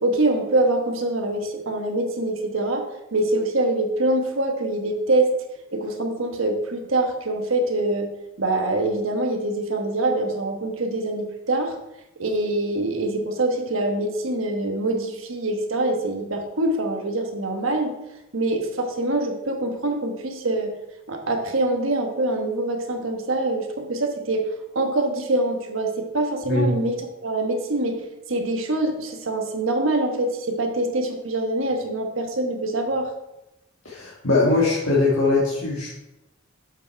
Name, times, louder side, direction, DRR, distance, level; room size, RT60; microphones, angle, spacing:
voice 1, 0.0-5.3 5.7-8.1 8.4-11.8 12.2-17.9 18.3-20.8 21.1-24.5 24.7-33.1, right 2 dB, 75° right, 4 dB, 1.2 m, -24 dB
voice 2, 33.9-35.9, left 3 dB, 80° left, -6 dB, 1.9 m, -21 dB
7.4 x 5.8 x 4.6 m, 0.93 s
head